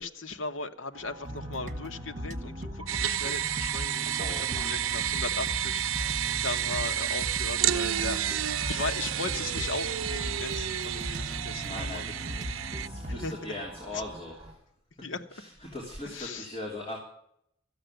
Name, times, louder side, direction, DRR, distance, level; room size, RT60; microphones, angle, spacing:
voice 1, 0.0-12.1 13.1-13.6 13.9-14.0 15.0-15.3 16.0-16.5, left 3 dB, 75° left, 1.1 m, -38 dB
sound 1, 0.9-14.5, right 1 dB, 15° right, 3.6 m, -46 dB
sound 2, 1.2-13.3, equal, 40° right, 1.5 m, -38 dB
sound 3, 2.9-12.9, right 11 dB, 85° right, 0.6 m, -31 dB
voice 2, 4.2-4.8 11.6-14.3 15.3-17.0, left 2 dB, 25° left, 2.9 m, -40 dB
13.5 x 8.1 x 9.0 m
head